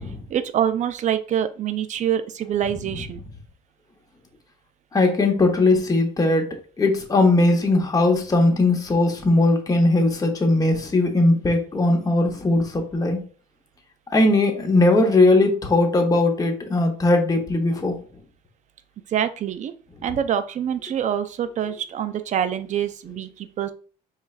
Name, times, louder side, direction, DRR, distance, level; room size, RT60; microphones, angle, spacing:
voice 1, 0.3-3.2 19.1-19.7 20.0-23.7, right 9 dB, 45° right, 11 dB, 0.5 m, -25 dB
voice 2, 4.9-6.5 6.8-13.2 14.1-18.0, left 2 dB, 20° left, 2 dB, 0.9 m, -19 dB
4.6 x 3.2 x 2.4 m, 0.39 s
cardioid pair, 110°, 17 cm